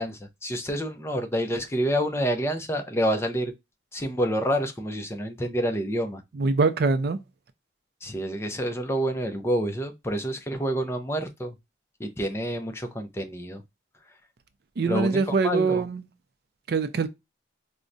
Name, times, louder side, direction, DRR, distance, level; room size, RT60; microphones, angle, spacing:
voice 1, 0.0-3.5 3.9-6.2 8.0-11.5 12.0-13.6 14.9-15.8, equal, 15° left, 0.5 m, -28 dB
voice 2, 6.4-7.2 14.8-16.0 16.7-17.1, right 4 dB, 55° right, 0.4 m, -23 dB
4.6 x 2.1 x 2.5 m
head